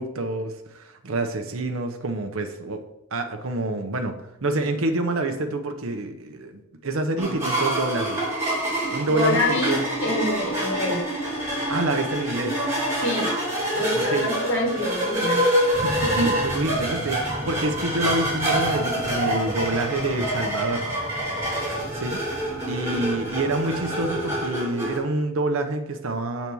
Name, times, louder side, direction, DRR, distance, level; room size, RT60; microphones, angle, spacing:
voice 1, 0.0-2.8 3.1-4.1 4.4-8.2 8.9-9.8 11.7-12.6 13.9-14.3 15.8-20.9 21.9-22.2 22.7-26.5, right 2 dB, 75° right, 5 dB, 0.8 m, -27 dB
sound 1, 7.2-25.0, right 1 dB, 15° right, 2.6 m, -26 dB
voice 2, 9.1-9.7 10.0-11.0 13.0-13.3 13.7-15.4, left 1 dB, 65° left, -2 dB, 2.5 m, -25 dB
sound 2, 15.7-24.5, left 1 dB, 25° left, 1.5 m, -37 dB
6.9 x 4.1 x 6.1 m, 0.83 s
head